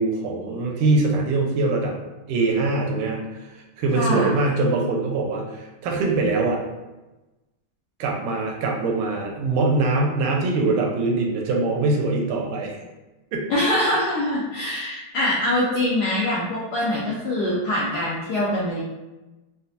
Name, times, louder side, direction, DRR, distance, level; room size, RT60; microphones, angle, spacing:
voice 1, 0.0-1.9 2.3-3.5 3.8-6.6 8.0-12.8 13.3-13.5, right 3 dB, 85° right, 0 dB, 1.5 m, -23 dB
voice 2, 3.9-4.3 13.5-18.8, left 1 dB, 80° left, -6 dB, 0.9 m, -23 dB
4.1 x 2.0 x 2.6 m, 1.1 s
omnidirectional pair, 2.3 m